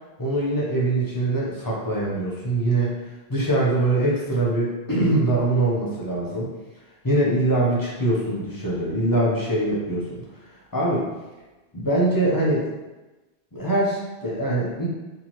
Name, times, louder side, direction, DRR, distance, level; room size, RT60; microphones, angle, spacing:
voice 1, 0.2-2.9 3.3-6.5 7.0-10.2 10.7-11.0 11.7-12.7 13.5-14.9, right 2 dB, 30° left, -5 dB, 0.4 m, -23 dB
2.8 x 2.3 x 2.9 m, 1.1 s
omnidirectional pair, 1.1 m